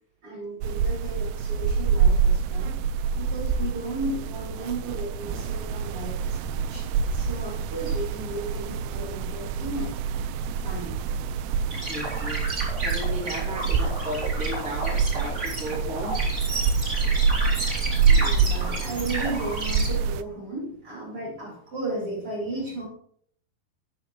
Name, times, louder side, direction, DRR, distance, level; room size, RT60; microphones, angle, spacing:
voice 1, 0.2-2.8 3.1-10.9 17.5-22.9, right 2 dB, 35° right, -4 dB, 4.4 m, -35 dB
sound 1, 0.6-20.2, right 5 dB, 85° right, 2.7 m, -26 dB
sound 2, 11.7-19.9, right 2 dB, 20° right, 3.3 m, -32 dB
voice 2, 11.8-12.4 12.8-16.2 16.5-16.6, equal, ahead, -6 dB, 3.8 m, -35 dB
14.0 x 10.5 x 3.3 m, 0.63 s
omnidirectional pair, 4.9 m